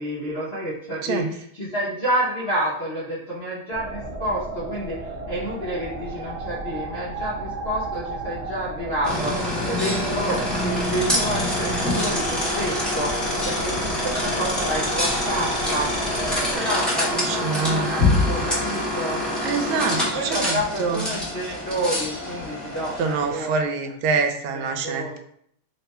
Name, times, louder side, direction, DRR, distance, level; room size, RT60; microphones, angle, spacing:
voice 1, 0.0-15.9 16.5-19.2 19.9-23.9 24.5-25.2, right 1 dB, 60° left, -7 dB, 0.6 m, -29 dB
sound 1, 3.7-16.6, right 2 dB, 65° right, 1.2 m, -34 dB
sound 2, 9.0-23.5, left 1 dB, ahead, 0.4 m, -25 dB
voice 2, 17.1-17.9 19.4-21.0 23.0-25.2, right 4 dB, 85° right, 6 dB, 1.4 m, -25 dB
3.8 x 2.2 x 4.1 m, 0.68 s
omnidirectional pair, 2.2 m